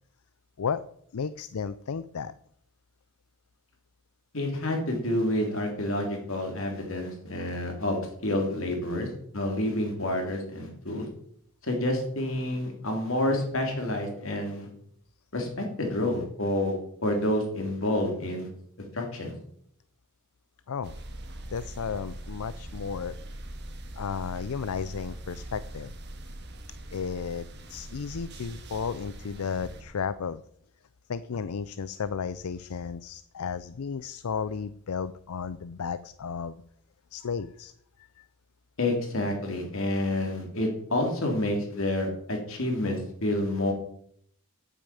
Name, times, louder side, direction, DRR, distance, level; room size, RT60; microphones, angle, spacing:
voice 1, 1.1-2.3 20.7-20.9 21.5-23.2 23.9-25.9 26.9-30.4 31.1-36.6 37.1-37.7 38.0-38.2, left 6 dB, 80° left, 14 dB, 0.5 m, -33 dB
voice 2, 4.3-9.1 9.3-11.1 11.6-14.7 15.3-18.5 18.9-19.3 38.8-43.7, left 1 dB, 65° left, 2 dB, 3.2 m, -29 dB
sound 1, 20.8-29.8, right 1 dB, 50° right, 1.7 m, -42 dB
9.0 x 8.4 x 8.5 m, 0.70 s
head